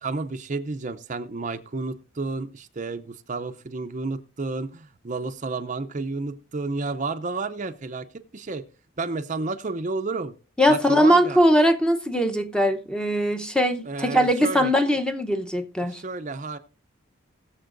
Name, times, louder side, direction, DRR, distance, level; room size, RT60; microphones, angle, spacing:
voice 1, 0.0-8.6 9.0-10.3 10.7-11.4 13.8-14.7 15.9-16.6, right 3 dB, 35° right, 0.6 m, -31 dB
voice 2, 10.6-16.0, equal, 5° left, 0.8 m, -21 dB
21.0 x 7.3 x 2.6 m
head